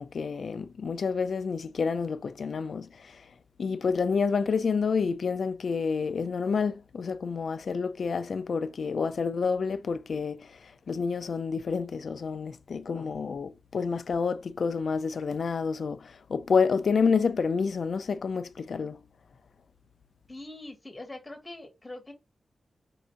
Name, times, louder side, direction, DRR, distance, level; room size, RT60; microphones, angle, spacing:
voice 1, 0.0-3.2 3.6-19.0, left 5 dB, 70° left, 0.4 m, -29 dB
voice 2, 20.3-22.1, left 2 dB, 20° left, 1.4 m, -43 dB
4.7 x 2.5 x 3.8 m
wide cardioid pair, 115°, 0 cm